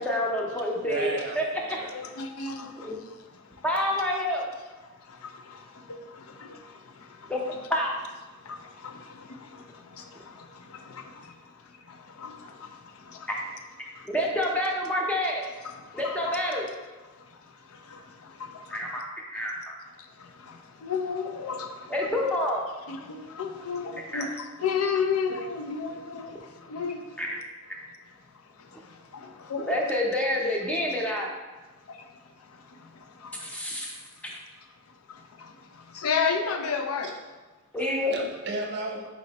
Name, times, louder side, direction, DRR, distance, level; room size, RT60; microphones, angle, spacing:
voice 1, 0.0-1.4 2.8-3.0 3.6-4.5 7.3-7.9 13.3-13.4 14.1-15.4 15.9-16.7 18.7-19.0 19.3-19.7 21.9-22.6 24.1-24.3 27.2-27.3 29.7-31.3 33.4-33.9 34.2-34.4 37.7-38.2, left 1 dB, 5° left, -2 dB, 0.6 m, -28 dB
voice 2, 0.9-1.9 37.8-39.1, right 2 dB, 55° right, 1 dB, 0.6 m, -34 dB
voice 3, 1.9-3.6 4.8-7.5 8.4-13.3 13.8-14.1 15.6-16.4 17.1-19.0 20.0-22.0 22.9-27.3 28.4-29.8 31.8-33.6 34.9-37.1, left 5 dB, 85° left, 5 dB, 0.5 m, -35 dB
4.2 x 4.1 x 2.8 m, 1.2 s
head